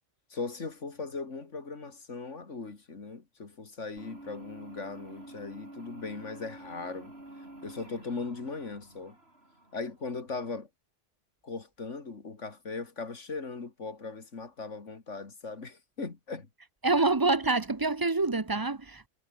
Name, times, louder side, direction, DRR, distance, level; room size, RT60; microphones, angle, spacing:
voice 1, 0.3-7.1 7.6-9.2 9.7-10.7 11.4-16.5, left 4 dB, 85° left, 2.9 m, -39 dB
sound 1, 4.0-10.3, right 1 dB, 60° right, 6.2 m, -49 dB
voice 2, 16.8-19.1, right 3 dB, 20° right, 0.9 m, -26 dB
omnidirectional pair, 1.2 m